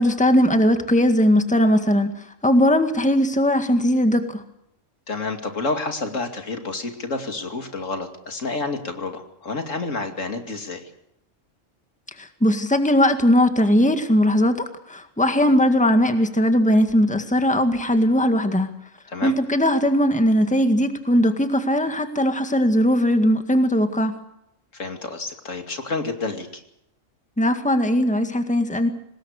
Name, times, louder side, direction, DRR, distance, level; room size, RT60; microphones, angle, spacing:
voice 1, 0.0-2.2 2.4-4.4 12.2-18.7 19.2-24.1 27.4-28.9, equal, 5° left, 7 dB, 1.9 m, -19 dB
voice 2, 5.1-10.8 19.1-19.3 24.7-26.6, left 3 dB, 75° left, 6 dB, 2.9 m, -29 dB
24.5 x 20.0 x 6.5 m, 0.79 s
omnidirectional pair, 1.3 m